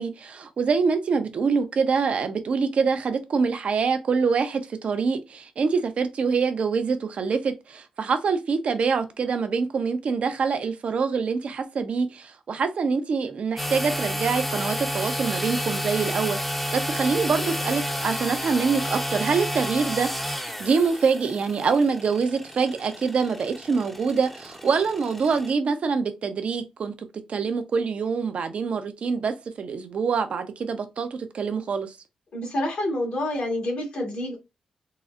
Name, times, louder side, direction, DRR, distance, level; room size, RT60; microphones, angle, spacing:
voice 1, 0.0-20.1 20.6-26.9 27.3-32.0, right 5 dB, 65° right, 0.6 m, -25 dB
sound 1, 13.6-25.5, equal, 5° left, 0.6 m, -31 dB
voice 2, 32.3-34.4, left 1 dB, 75° left, 1.6 m, -28 dB
3.8 x 2.0 x 2.4 m
cardioid pair, 55°, 2 cm